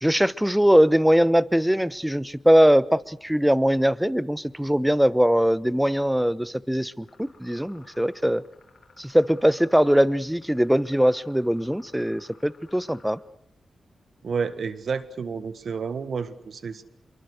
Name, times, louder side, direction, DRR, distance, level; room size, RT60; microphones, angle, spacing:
voice 1, 0.0-8.4 9.0-13.2, equal, 5° right, 18 dB, 1.0 m, -21 dB
sound 1, 7.0-13.1, left 3 dB, 55° left, 7.9 m, -55 dB
voice 2, 14.2-16.8, right 5 dB, 70° right, 14 dB, 1.6 m, -30 dB
27.0 x 23.5 x 6.7 m, 0.77 s
cardioid pair, 65°, 0 cm